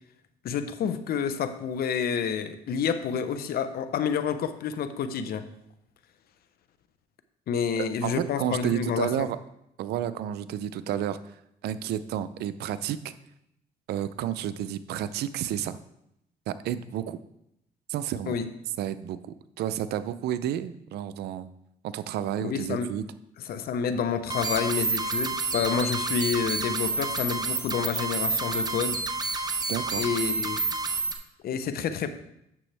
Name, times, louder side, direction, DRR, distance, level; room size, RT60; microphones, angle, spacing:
voice 1, 0.4-5.5 7.5-9.3 18.3-18.5 22.4-22.9 23.5-29.0 29.9-30.6 31.4-32.1, left 6 dB, 65° left, 10 dB, 0.8 m, -29 dB
voice 2, 7.8-9.4 9.8-11.4 11.6-13.1 13.9-15.8 16.5-17.2 17.9-18.4 18.8-19.2 19.6-21.5 21.8-23.0 29.7-30.1, right 10 dB, 75° right, 13 dB, 0.5 m, -31 dB
sound 1, 24.3-31.1, right 3 dB, 25° right, 1.0 m, -29 dB
9.0 x 7.0 x 3.4 m, 0.80 s
supercardioid pair, 80°, 17 cm